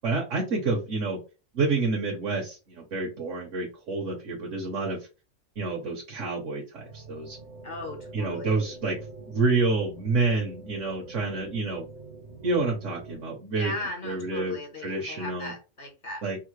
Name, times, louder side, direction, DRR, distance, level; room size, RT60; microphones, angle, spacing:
voice 1, 0.0-1.2 1.5-5.0 5.6-7.4 8.1-11.9 12.4-13.7 14.0-14.6 14.8-15.5 16.2-16.4, right 3 dB, 80° right, -1 dB, 1.2 m, -28 dB
sound 1, 6.7-13.2, right 3 dB, 65° right, 0.9 m, -45 dB
voice 2, 7.6-8.6 13.6-16.2, left 2 dB, 45° left, 2 dB, 0.8 m, -37 dB
3.6 x 2.1 x 3.1 m, 0.31 s
omnidirectional pair, 1.3 m